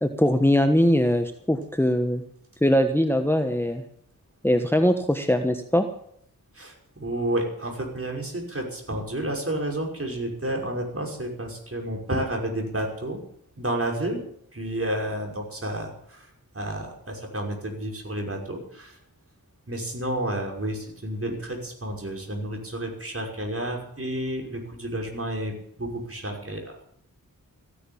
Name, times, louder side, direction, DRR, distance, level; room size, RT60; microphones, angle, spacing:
voice 1, 0.0-2.2 2.6-3.8 4.4-5.9, equal, 5° left, 6 dB, 1.3 m, -21 dB
voice 2, 6.5-13.2 13.6-14.2 14.5-19.0 19.7-26.8, right 1 dB, 40° right, 1 dB, 5.7 m, -31 dB
15.5 x 10.0 x 8.7 m, 0.67 s
cardioid pair, 50°, 34 cm